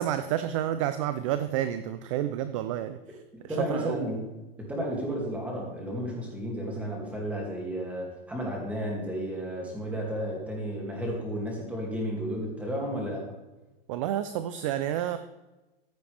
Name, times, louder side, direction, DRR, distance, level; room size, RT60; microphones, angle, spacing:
voice 1, 0.0-3.0 3.4-4.0 13.9-15.2, right 11 dB, 35° right, 11 dB, 0.4 m, -29 dB
voice 2, 3.5-4.2 4.7-13.2, equal, 5° right, -2 dB, 2.4 m, -32 dB
14.5 x 7.7 x 3.4 m, 1.1 s
supercardioid pair, 165°, 30 cm